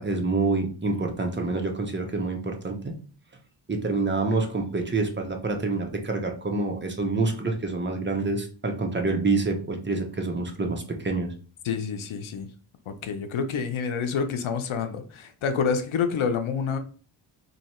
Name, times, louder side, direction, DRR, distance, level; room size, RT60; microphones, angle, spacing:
voice 1, 0.0-3.0 3.7-11.3, right 3 dB, 25° right, 0.8 m, -27 dB
voice 2, 11.6-12.5 12.9-16.8, left 6 dB, 90° left, 0.7 m, -28 dB
2.9 x 2.8 x 4.3 m
wide cardioid pair, 85°, 47 cm